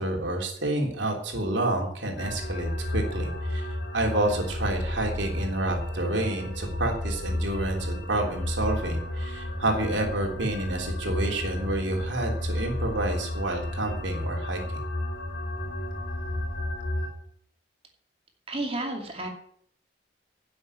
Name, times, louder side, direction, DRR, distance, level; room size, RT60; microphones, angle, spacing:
voice 1, 0.0-3.7 3.9-14.6, right 1 dB, 80° right, 1 dB, 3.4 m, -29 dB
sound 1, 2.2-17.1, left 1 dB, 70° left, 3.0 m, -32 dB
voice 2, 18.5-19.3, right 2 dB, 30° right, 3 dB, 2.6 m, -31 dB
11.0 x 7.8 x 8.5 m, 0.66 s
head